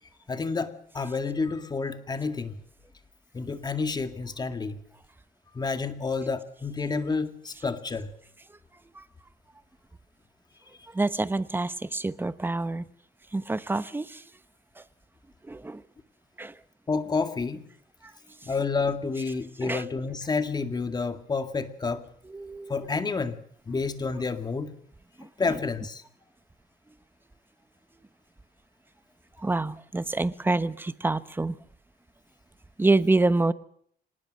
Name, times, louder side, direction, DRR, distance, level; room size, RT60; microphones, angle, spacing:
voice 1, 0.3-2.6 3.3-4.8 5.5-8.1 16.9-17.7 18.4-22.0 22.7-23.4 23.7-24.7 25.2-26.0, left 4 dB, 25° left, 8 dB, 2.1 m, -29 dB
voice 2, 10.9-12.8 13.3-14.2 15.5-15.8 16.4-16.5 19.6-19.8 22.3-22.7 29.4-31.6 32.8-33.5, right 2 dB, 10° right, 13 dB, 1.0 m, -26 dB
25.5 x 19.5 x 6.6 m, 0.64 s
cardioid pair, 110°, 17 cm